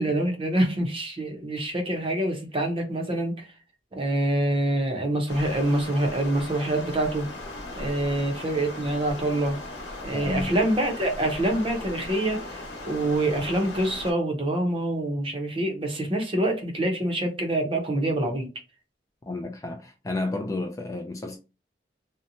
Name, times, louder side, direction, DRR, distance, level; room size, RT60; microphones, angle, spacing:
voice 1, 0.0-3.5 3.9-7.3 7.7-9.6 10.0-18.5, right 1 dB, 30° right, 0.6 m, -26 dB
Stream, 5.3-14.1, left 2 dB, 70° left, 1.0 m, -38 dB
voice 2, 10.1-10.6 19.3-21.4, left 2 dB, 20° left, 0.3 m, -31 dB
2.7 x 2.1 x 2.6 m
head